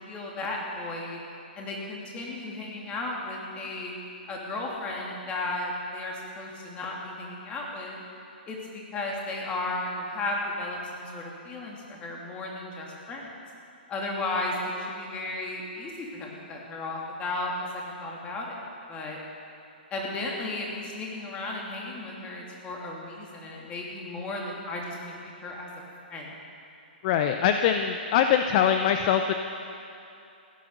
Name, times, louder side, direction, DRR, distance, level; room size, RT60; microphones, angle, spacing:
voice 1, 0.1-1.2 1.6-4.0 4.3-8.0 8.5-13.3 13.9-18.6 18.9-19.2 19.9-25.1 25.4-25.7 26.1-26.3, left 2 dB, 20° left, -2 dB, 2.8 m, -34 dB
voice 2, 27.0-29.3, left 8 dB, 40° left, 7 dB, 0.6 m, -23 dB
16.0 x 9.7 x 6.7 m, 2.7 s
hypercardioid pair, 135°, 6 cm